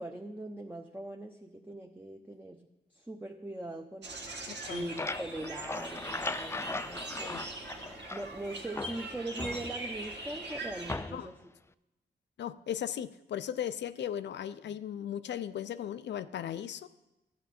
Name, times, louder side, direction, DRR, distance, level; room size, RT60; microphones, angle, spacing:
voice 1, 0.0-2.6 2.9-4.4 4.7-7.5 8.1-11.4 14.7-14.8, right 1 dB, 10° right, 2 dB, 0.8 m, -41 dB
sound 1, 4.0-10.9, right 2 dB, 75° right, 1.5 m, -42 dB
voice 2, 4.5-4.9 7.2-7.5 11.1-11.3 12.4-16.9, left 10 dB, 80° left, 13 dB, 0.5 m, -37 dB
sound 2, 4.5-8.4 8.8-10.1 10.9-11.4, left 3 dB, 15° left, 0.3 m, -39 dB
12.0 x 8.1 x 4.3 m, 0.97 s
cardioid pair, 65°, 18 cm